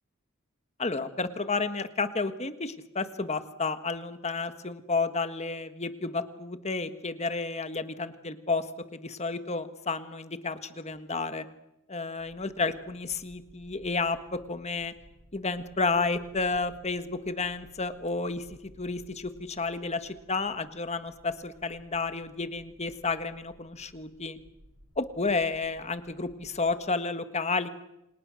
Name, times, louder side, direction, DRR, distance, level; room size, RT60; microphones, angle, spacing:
voice 1, 0.8-8.6 8.9-11.4 11.9-14.9 15.3-18.5 18.8-24.4 25.0-27.7, left 3 dB, 30° left, 10 dB, 1.5 m, -31 dB
sound 1, 12.2-26.8, equal, 85° right, 6.0 m, -58 dB
29.0 x 26.5 x 6.4 m, 0.89 s
head